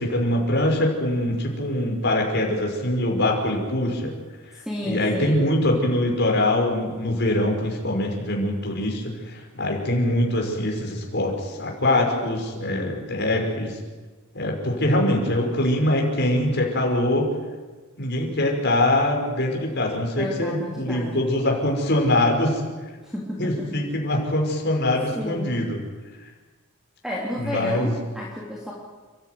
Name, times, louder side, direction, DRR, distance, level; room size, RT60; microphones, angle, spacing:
voice 1, 0.0-4.1 4.8-13.8 14.3-17.3 18.0-22.6 23.4-25.8 27.4-27.9, left 1 dB, 50° left, 1 dB, 5.4 m, -23 dB
voice 2, 4.5-5.5 20.2-21.2 23.0-23.7 25.1-25.6 27.0-28.7, equal, ahead, -4 dB, 3.2 m, -31 dB
30.0 x 14.0 x 9.5 m, 1.3 s
head